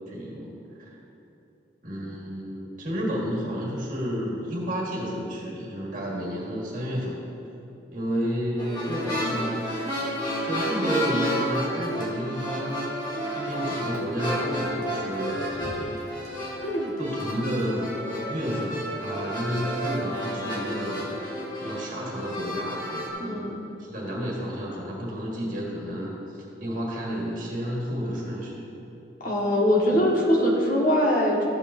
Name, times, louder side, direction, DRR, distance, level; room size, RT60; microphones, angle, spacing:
voice 1, 0.1-1.0 1.8-7.2 7.9-9.7 10.4-13.0 13.3-15.7 17.0-18.0 18.3-21.2 21.6-23.5 23.8-28.7 29.9-30.0, equal, 45° right, -4 dB, 1.7 m, -31 dB
sound 1, 8.6-23.1, equal, 25° left, 1.5 m, -31 dB
voice 2, 16.6-16.9 23.2-23.6 29.2-31.5, equal, 45° left, -4 dB, 1.6 m, -23 dB
13.5 x 8.4 x 2.7 m, 3.0 s
head